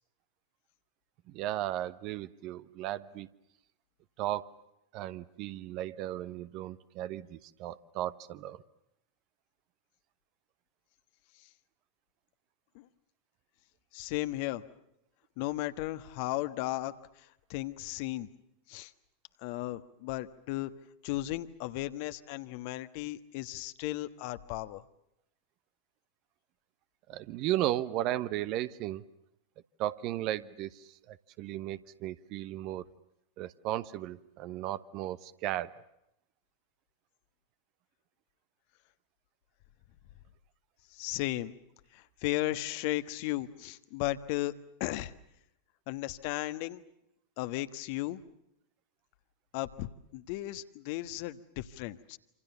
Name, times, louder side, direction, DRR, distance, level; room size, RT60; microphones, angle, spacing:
voice 1, 1.3-3.3 4.2-4.5 4.9-8.6 27.1-29.0 29.8-32.8 33.4-35.7, right 13 dB, 40° right, 14 dB, 1.1 m, -35 dB
voice 2, 13.9-14.6 15.4-18.3 18.7-18.9 19.4-20.7 21.0-24.8 40.9-41.5 41.9-44.5 44.8-45.1 45.9-46.8 47.4-48.2 49.5-52.2, left 17 dB, 45° left, 12 dB, 1.4 m, -35 dB
27.5 x 27.5 x 7.0 m, 0.81 s
figure-of-eight pair, 90°, 0 cm